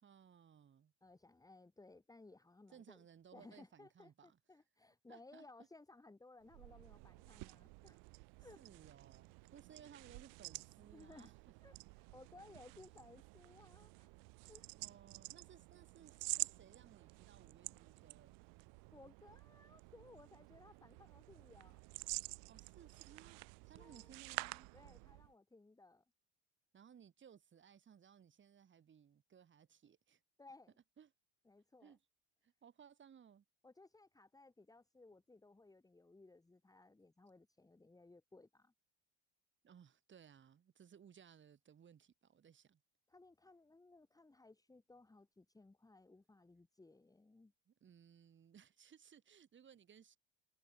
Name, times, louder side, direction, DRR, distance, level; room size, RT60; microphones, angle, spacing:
voice 1, 0.0-0.9 2.7-4.4 5.1-5.4 8.6-11.3 14.7-18.4 22.5-24.7 26.7-30.2 31.0-31.1 31.8-32.0 32.4-33.4 39.6-42.8 47.7-50.2, right 8 dB, 35° right, 3.7 m, -62 dB
voice 2, 1.0-3.0 3.3-8.0 8.4-8.6 10.9-11.3 11.6-14.1 14.5-14.7 18.9-21.8 23.8-24.1 24.7-26.0 30.4-30.7 31.5-32.0 33.6-38.7 43.1-47.5, left 2 dB, 10° left, 2.4 m, -61 dB
sound 1, 6.4-25.3, right 33 dB, 70° right, 1.1 m, -50 dB
supercardioid pair, 95°, 34 cm